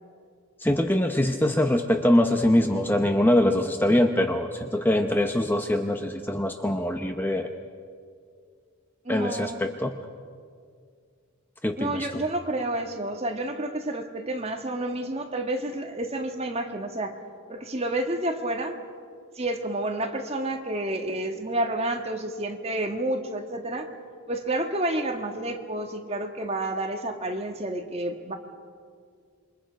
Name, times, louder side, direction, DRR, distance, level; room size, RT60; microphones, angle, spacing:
voice 1, 0.6-7.5 9.1-9.9 11.6-12.2, left 1 dB, 10° left, 5 dB, 0.8 m, -23 dB
voice 2, 9.0-9.7 11.8-17.2 17.5-18.8 19.3-23.9 24.3-28.3, right 1 dB, 30° right, 4 dB, 1.7 m, -30 dB
27.5 x 24.0 x 5.2 m, 2.1 s
head